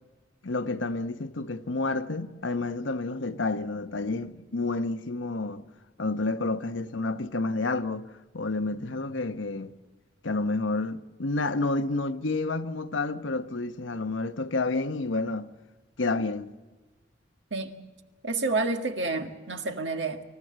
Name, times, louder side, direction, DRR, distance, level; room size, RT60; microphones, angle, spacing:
voice 1, 0.4-5.7 6.0-8.1 8.3-9.7 10.2-15.5 16.0-16.5, left 3 dB, 90° left, 1.0 m, -29 dB
voice 2, 18.2-20.2, right 3 dB, 70° right, 1.7 m, -29 dB
27.0 x 15.0 x 7.6 m
head